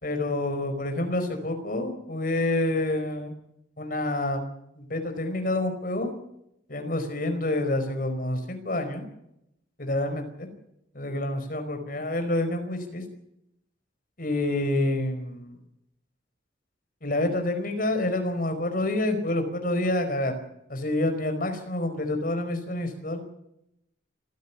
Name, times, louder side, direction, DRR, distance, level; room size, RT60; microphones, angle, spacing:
voice 1, 0.0-3.3 3.8-4.4 4.8-6.1 6.7-9.1 9.8-10.5 10.9-13.0 14.2-15.6 17.0-20.3 20.7-23.2, left 1 dB, 50° left, 7 dB, 4.8 m, -28 dB
26.0 x 15.0 x 7.2 m, 0.80 s
head